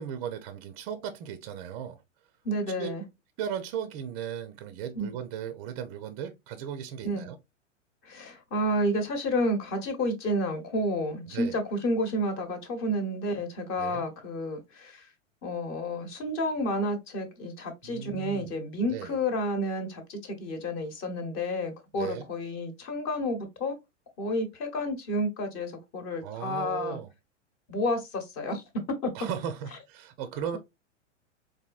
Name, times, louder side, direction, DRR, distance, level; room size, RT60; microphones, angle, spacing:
voice 1, 0.0-2.0 2.8-2.9 3.4-7.4 11.3-11.6 13.8-14.0 17.8-18.5 18.8-19.2 21.9-22.2 26.2-27.1 29.1-30.6, right 8 dB, 30° right, 0.4 m, -36 dB
voice 2, 2.4-3.0 4.9-5.1 7.0-7.3 8.0-15.1 15.4-23.8 24.2-27.0 27.7-29.1, equal, 35° left, 1.0 m, -30 dB
4.0 x 2.6 x 2.3 m
hypercardioid pair, 105°, 37 cm